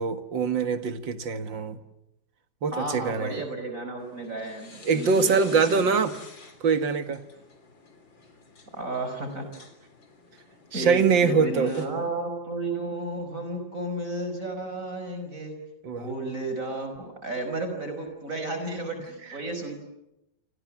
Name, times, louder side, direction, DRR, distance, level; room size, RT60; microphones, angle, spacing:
voice 1, 0.0-1.8 2.6-3.4 4.8-6.2 6.6-7.2 10.7-11.9 15.8-16.1, right 5 dB, 80° right, 10 dB, 2.4 m, -24 dB
voice 2, 2.7-5.9 8.7-9.5 10.7-15.5 16.0-19.8, right 2 dB, 45° right, 5 dB, 5.3 m, -32 dB
sound 1, 4.0-11.9, left 3 dB, 85° left, 4.3 m, -50 dB
30.0 x 26.5 x 7.3 m, 0.88 s
omnidirectional pair, 2.0 m